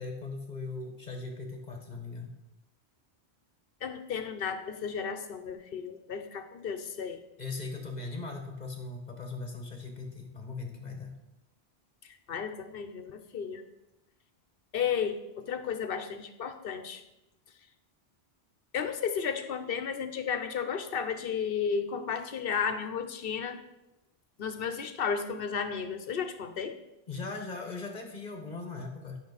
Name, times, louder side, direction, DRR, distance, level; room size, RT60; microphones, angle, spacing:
voice 1, 0.0-2.4 7.4-11.1 27.1-29.2, left 3 dB, 45° left, 3 dB, 1.3 m, -39 dB
voice 2, 3.8-7.2 12.3-13.6 14.7-17.0 18.7-23.6 24.4-26.7, left 6 dB, 65° left, 9 dB, 0.9 m, -33 dB
11.5 x 5.9 x 4.1 m, 0.91 s
omnidirectional pair, 1.1 m